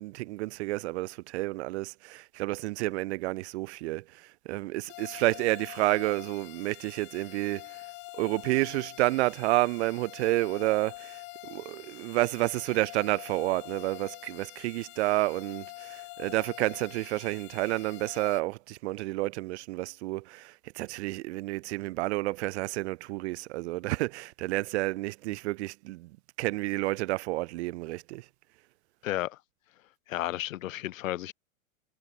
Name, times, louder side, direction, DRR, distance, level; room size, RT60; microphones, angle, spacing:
voice 1, 0.0-7.8 8.1-26.1 26.4-28.2, right 19 dB, 55° right, 0.6 m, -30 dB
sound 1, 4.9-18.4, left 27 dB, 30° left, 0.4 m, -46 dB
voice 2, 29.0-29.4 30.1-31.3, left 14 dB, 70° left, 0.6 m, -32 dB
hypercardioid pair, 100°, 41 cm